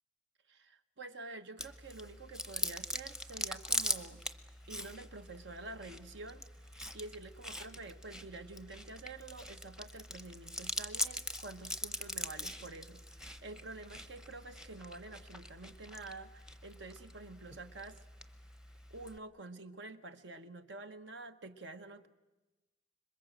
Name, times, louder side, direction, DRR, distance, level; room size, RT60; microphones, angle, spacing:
voice 1, 0.5-4.2 4.7-6.4 6.9-18.0 18.9-22.1, right 2 dB, 70° right, 9 dB, 1.3 m, -48 dB
Chewing mastication, 1.6-19.2, left 1 dB, 5° right, 0.7 m, -42 dB
26.5 x 22.5 x 7.7 m, 1.1 s
head